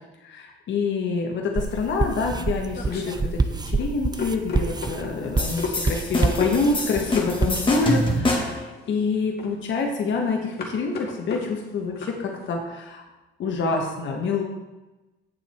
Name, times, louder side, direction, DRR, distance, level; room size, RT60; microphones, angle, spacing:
voice 1, 0.2-13.0 13.4-14.4, left 4 dB, 70° left, 1 dB, 1.4 m, -26 dB
sound 1, 1.6-8.2, right 3 dB, 20° right, 0.7 m, -27 dB
sound 2, 2.1-12.5, left 4 dB, 55° left, 2.0 m, -36 dB
sound 3, 5.4-8.7, left 1 dB, 25° left, 2.0 m, -26 dB
8.5 x 7.3 x 4.5 m, 1.1 s
cardioid pair, 90°, 20 cm